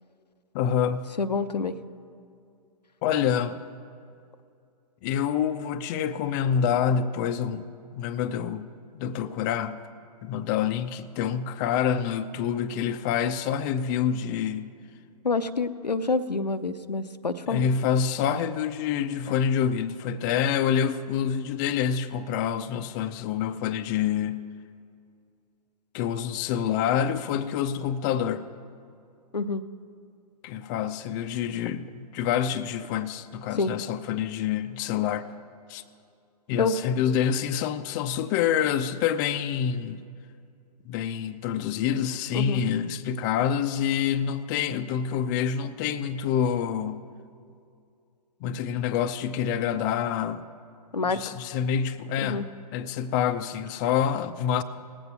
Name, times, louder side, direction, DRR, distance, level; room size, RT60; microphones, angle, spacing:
voice 1, 0.5-1.1 3.0-3.6 5.0-7.7 7.9-8.7 8.9-9.8 10.2-14.7 17.5-24.4 25.9-28.4 30.4-35.3 35.7-35.8 36.5-40.0 40.9-47.1 48.4-50.4 51.1-54.6, left 8 dB, 30° left, 11 dB, 0.5 m, -27 dB
voice 2, 1.2-1.7 15.2-17.6 29.3-29.6 33.6-33.7 36.6-36.8 42.3-42.6 50.9-51.3 52.2-52.5, left 4 dB, 85° left, 12 dB, 0.6 m, -27 dB
18.5 x 8.0 x 5.9 m, 2.4 s
figure-of-eight pair, 110°, 21 cm